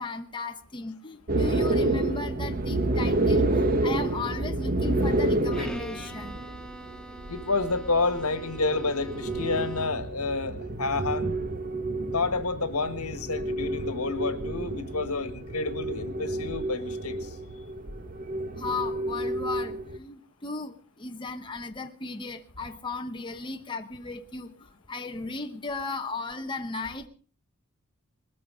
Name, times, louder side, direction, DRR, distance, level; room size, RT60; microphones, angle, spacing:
voice 1, 0.0-6.4 18.6-24.5 24.9-27.1, left 3 dB, 20° left, 5 dB, 1.1 m, -36 dB
sound 1, 1.3-20.0, right 2 dB, 40° right, 1.3 m, -29 dB
Bowed string instrument, 5.5-10.2, right 1 dB, 5° left, 1.1 m, -44 dB
voice 2, 7.3-11.4 12.1-17.3, left 3 dB, 85° left, 11 dB, 1.6 m, -29 dB
20.0 x 14.0 x 5.0 m, 0.41 s
head